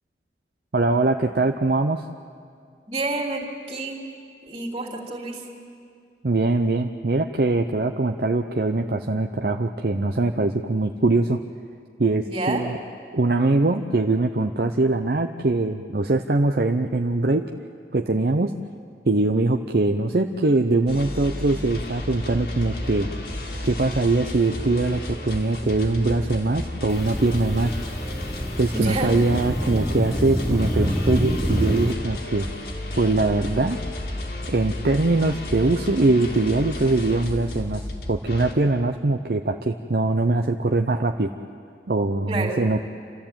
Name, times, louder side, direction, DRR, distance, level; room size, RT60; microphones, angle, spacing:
voice 1, 0.7-2.0 6.2-11.4 12.0-12.8 13.1-17.5 17.9-18.5 19.1-23.1 23.6-27.7 28.6-32.5 33.0-33.8 34.5-41.3 41.9-42.8, right 2 dB, 55° right, 5 dB, 0.7 m, -22 dB
voice 2, 2.9-4.1 4.4-5.4 12.3-12.7 28.7-29.1 42.3-42.6, right 2 dB, 35° right, -1 dB, 3.0 m, -28 dB
sound 1, 20.9-38.5, left 1 dB, 60° left, 2.5 m, -33 dB
sound 2, 26.9-31.9, equal, ahead, 0.7 m, -27 dB
29.5 x 13.5 x 8.9 m, 2.3 s
head